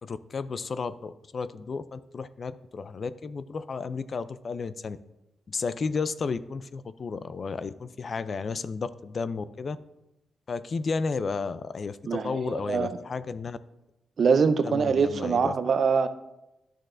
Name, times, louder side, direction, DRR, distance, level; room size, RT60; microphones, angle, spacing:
voice 1, 0.0-5.0 5.5-9.8 10.5-13.6 14.6-15.6, left 4 dB, 50° left, 14 dB, 0.3 m, -33 dB
voice 2, 12.1-13.0 14.2-16.1, right 5 dB, 60° right, 11 dB, 0.5 m, -24 dB
10.5 x 6.3 x 2.5 m, 0.94 s
cardioid pair, 75°, 0 cm